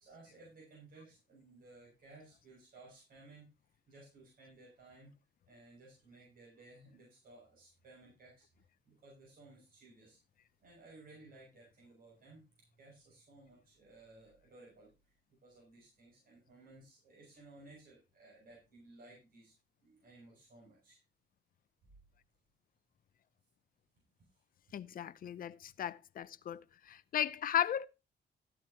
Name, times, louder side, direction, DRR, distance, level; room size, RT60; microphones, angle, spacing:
voice 1, 0.0-3.4 3.9-5.1 5.5-8.5 8.9-10.2 10.6-12.4 12.8-15.2 15.4-19.5 19.8-21.0, right 2 dB, 50° right, 6.4 m, -58 dB
voice 2, 24.7-26.6 26.9-27.9, left 10 dB, 50° left, 0.6 m, -35 dB
14.0 x 9.3 x 2.9 m
cardioid pair, 150°, 19 cm